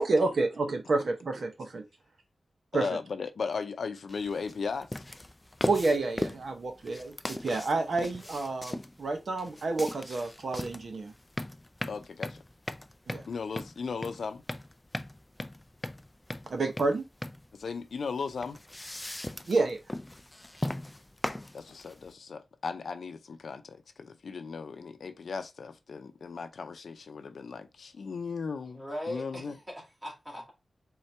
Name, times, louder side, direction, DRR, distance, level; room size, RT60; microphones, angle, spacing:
voice 1, 0.0-1.8 2.7-2.9 5.7-11.1 13.1-13.2 16.5-17.0 19.5-19.8, right 3 dB, 60° right, 0.8 m, -29 dB
voice 2, 2.7-5.0 11.9-12.4 13.3-14.4 17.5-18.6 21.5-29.6, left 5 dB, 80° left, 0.5 m, -36 dB
sound 1, 4.1-22.1, left 1 dB, 15° left, 0.3 m, -39 dB
voice 3, 28.7-30.5, left 1 dB, 15° right, 2.1 m, -39 dB
4.3 x 3.8 x 3.3 m
wide cardioid pair, 140°, 0 cm